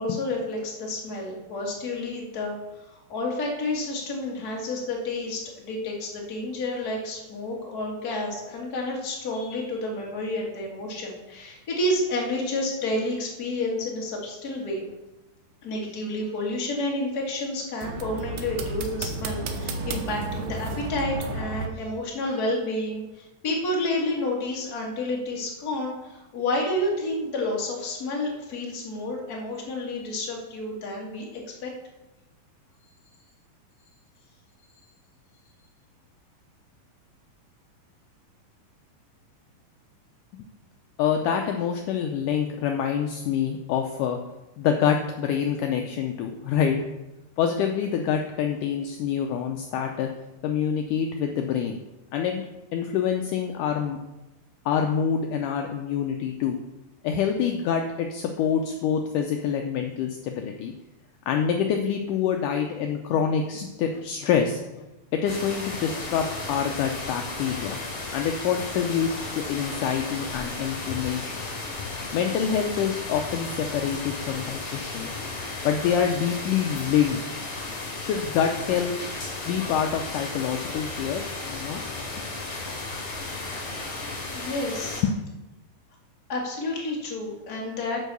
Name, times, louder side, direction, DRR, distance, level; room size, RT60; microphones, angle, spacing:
voice 1, 0.0-14.8 15.6-31.3 31.6-31.7 84.3-85.0 86.3-88.0, left 2 dB, 35° left, -2 dB, 1.7 m, -30 dB
sound 1, 17.8-21.7, right 3 dB, 70° right, 2.3 m, -32 dB
voice 2, 41.0-44.2 44.6-46.8 47.4-50.1 50.4-51.8 52.1-52.4 52.7-54.0 54.7-56.6 57.0-60.7 61.3-67.8 68.1-71.4 72.1-75.1 75.6-77.2 78.0-78.9 79.4-81.2 81.5-81.8 82.2-82.3 85.0-85.2, left 8 dB, 75° left, 3 dB, 2.0 m, -26 dB
sound 2, 65.3-85.0, left 3 dB, 50° left, 4.3 m, -34 dB
11.0 x 4.5 x 6.8 m, 1.0 s
omnidirectional pair, 4.1 m